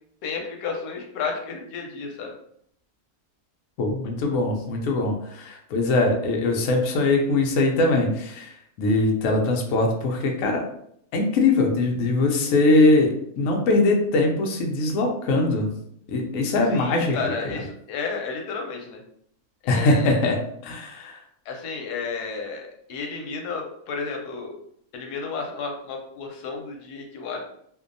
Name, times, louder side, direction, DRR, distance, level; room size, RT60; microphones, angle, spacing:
voice 1, 0.2-2.3 16.7-19.0 19.6-20.2 21.5-24.5 24.9-27.4, left 4 dB, 90° left, 2 dB, 1.1 m, -32 dB
voice 2, 3.8-8.5 8.8-10.6 11.1-15.7 16.1-17.3 19.7-20.4 20.6-21.2, left 2 dB, 70° left, 1 dB, 0.9 m, -21 dB
2.6 x 2.2 x 2.5 m, 0.69 s
omnidirectional pair, 1.6 m